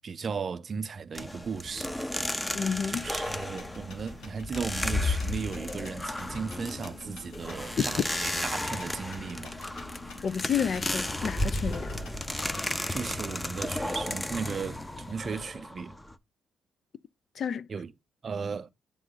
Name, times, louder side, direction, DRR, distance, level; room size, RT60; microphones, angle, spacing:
voice 1, 0.0-2.0 2.9-9.6 12.9-16.0 17.7-17.9 18.2-18.7, right 5 dB, 45° right, 0.5 m, -36 dB
sound 1, 1.1-16.2, left 1 dB, 10° left, 0.6 m, -33 dB
voice 2, 2.5-3.1 10.2-11.9 17.4-17.7, left 7 dB, 55° left, 0.4 m, -30 dB
sound 2, 3.2-12.7, left 4 dB, 85° left, 2.3 m, -48 dB
7.8 x 3.7 x 3.9 m
cardioid pair, 90°, 0 cm